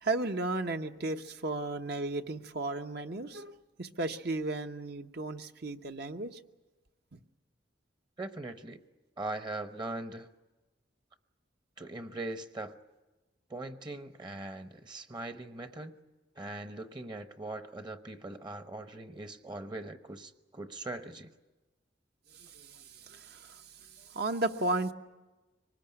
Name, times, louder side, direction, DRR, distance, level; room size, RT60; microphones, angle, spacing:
voice 1, 0.0-6.4 7.1-7.2 22.3-23.6 24.0-24.9, right 2 dB, 60° right, 6 dB, 1.0 m, -34 dB
voice 2, 8.2-8.8 9.2-10.3 11.8-12.8 13.5-15.9 16.4-21.3, right 2 dB, 25° right, 10 dB, 0.9 m, -41 dB
24.0 x 20.0 x 9.9 m, 1.2 s
head